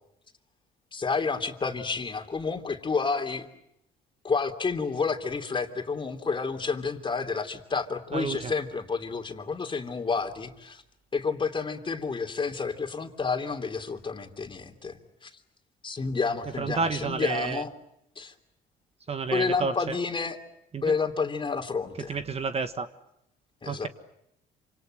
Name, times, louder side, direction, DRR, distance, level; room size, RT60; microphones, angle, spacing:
voice 1, 0.9-3.5 4.2-10.8 11.1-15.3 15.8-17.7 18.2-18.3 19.3-20.4 20.8-22.2 23.6-23.9, left 4 dB, 25° left, 6 dB, 3.1 m, -30 dB
voice 2, 8.1-8.5 16.6-17.6 19.1-19.9 20.7-20.8 22.1-22.9 23.7-23.9, right 5 dB, 35° right, 10 dB, 1.5 m, -30 dB
28.0 x 26.5 x 7.9 m, 0.79 s
cardioid pair, 105°, 18 cm